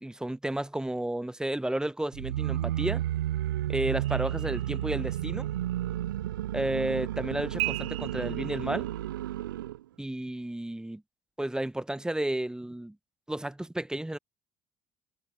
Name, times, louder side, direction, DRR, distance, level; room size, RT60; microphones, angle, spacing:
voice 1, 0.0-3.0 3.7-5.5 6.5-8.9 10.0-11.0 11.4-13.0 13.3-14.2, right 1 dB, 5° right, 1.0 m, -32 dB
sound 1, 2.1-9.8, right 13 dB, 80° right, 0.5 m, -32 dB
sound 2, 4.0-5.3 7.6-9.1, right 21 dB, 65° right, 6.6 m, -37 dB
figure-of-eight pair, 55°, 11 cm